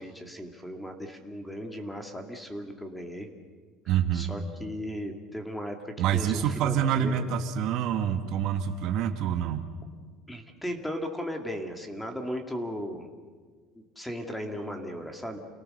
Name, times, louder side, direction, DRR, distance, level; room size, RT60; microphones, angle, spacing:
voice 1, 0.0-3.3 4.1-7.3 10.3-13.1 13.7-15.4, equal, 5° left, 4 dB, 2.2 m, -36 dB
voice 2, 3.9-4.3 6.0-9.6, right 9 dB, 55° right, 7 dB, 1.5 m, -27 dB
29.0 x 18.5 x 6.6 m, 1.6 s
cardioid pair, 140°, 0 cm